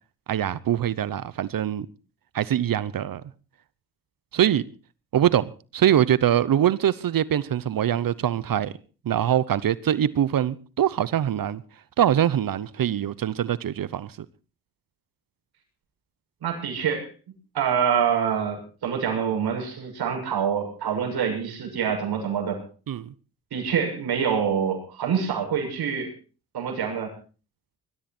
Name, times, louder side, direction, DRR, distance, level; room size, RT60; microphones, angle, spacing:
voice 1, 0.3-1.9 2.3-3.2 4.3-4.6 5.1-8.7 9.0-11.6 12.0-14.3 22.9-23.1, right 10 dB, 60° right, 0.9 m, -23 dB
voice 2, 16.4-17.1 17.5-22.6 23.5-26.1 26.5-27.1, right 7 dB, 80° right, 6.9 m, -26 dB
21.0 x 13.5 x 4.4 m
cardioid pair, 65°, 38 cm